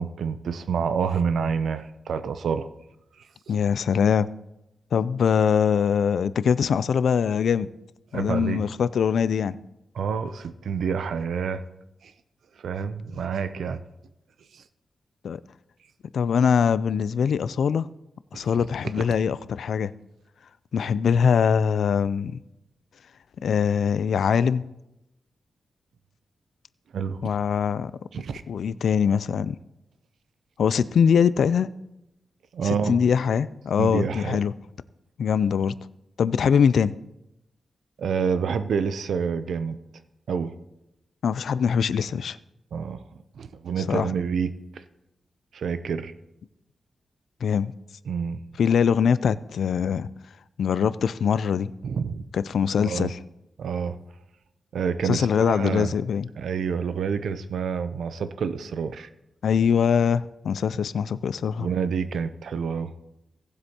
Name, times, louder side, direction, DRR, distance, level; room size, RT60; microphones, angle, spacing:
voice 1, 0.0-2.7 3.5-3.6 8.1-8.6 9.9-11.6 12.0-12.1 12.6-13.8 14.5-14.6 18.3-18.6 26.9-27.2 28.1-28.4 32.5-33.0 33.8-34.4 38.0-39.8 40.3-40.5 42.7-43.0 43.4-44.8 45.5-46.1 48.1-48.4 51.8-52.2 52.8-53.1 53.6-54.0 54.7-55.9 56.4-59.1 61.6-62.9, right 6 dB, 85° right, 0.5 m, -28 dB
voice 2, 3.5-4.3 4.9-7.7 8.1-9.6 15.2-15.4 16.1-17.9 18.3-19.9 20.7-22.4 23.4-24.6 27.2-27.9 28.5-29.6 30.6-31.7 32.6-34.5 35.2-35.8 36.2-37.0 41.2-42.4 43.9-44.1 47.4-47.7 48.6-50.1 50.6-51.7 52.3-53.2 55.0-56.3 59.4-61.7, left 7 dB, 80° left, 0.3 m, -22 dB
18.0 x 7.8 x 2.8 m
wide cardioid pair, 170°, 0 cm